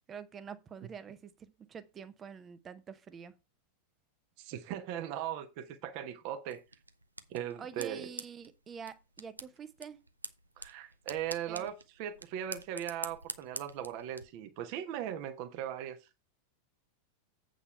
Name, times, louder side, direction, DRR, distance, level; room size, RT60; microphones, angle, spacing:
voice 1, 0.1-3.3 7.6-10.0 11.5-11.7, right 7 dB, 25° right, 0.9 m, -46 dB
voice 2, 4.4-6.6 7.3-8.1 10.6-16.0, right 10 dB, 45° right, 1.2 m, -39 dB
sound 1, 6.5-14.2, right 2 dB, 85° right, 0.7 m, -47 dB
8.3 x 5.3 x 5.5 m
figure-of-eight pair, 90°, 0 cm